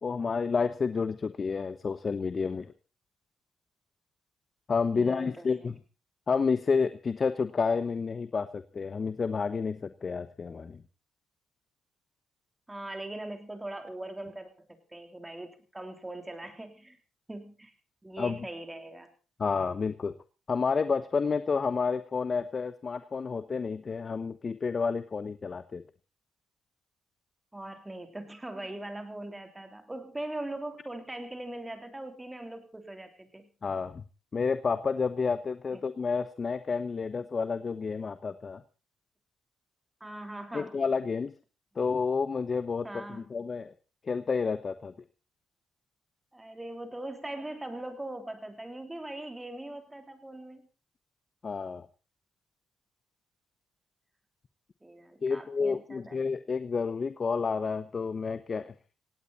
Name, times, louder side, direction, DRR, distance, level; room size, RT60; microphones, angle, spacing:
voice 1, 0.0-2.7 4.7-5.7 6.3-10.8 18.2-18.5 19.4-20.1 20.5-25.8 33.6-34.0 34.3-38.6 40.5-41.3 41.8-43.7 44.0-44.9 51.4-51.9 55.2-58.7, left 5 dB, 35° left, 12 dB, 0.9 m, -30 dB
voice 2, 4.9-5.7 12.7-17.0 17.3-17.7 18.0-19.1 27.5-33.5 35.7-35.8 40.0-40.8 42.8-43.2 46.3-50.7 54.8-56.2, right 1 dB, 10° right, 6 dB, 3.6 m, -41 dB
17.5 x 17.5 x 4.2 m, 0.34 s
cardioid pair, 115°, 0 cm